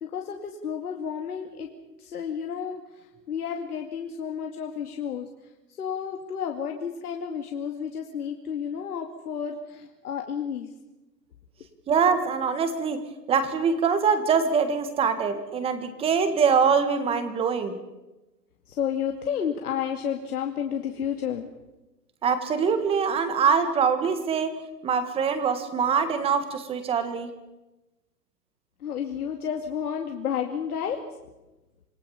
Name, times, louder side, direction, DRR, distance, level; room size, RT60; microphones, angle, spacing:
voice 1, 0.0-1.7 2.0-5.3 5.8-10.7 18.7-21.5 28.8-31.0, left 8 dB, 65° left, 3 dB, 2.5 m, -31 dB
voice 2, 11.9-17.8 22.2-24.5 24.8-27.3, right 6 dB, 10° right, 10 dB, 1.5 m, -24 dB
27.0 x 17.5 x 7.1 m, 1.0 s
hypercardioid pair, 150°, 48 cm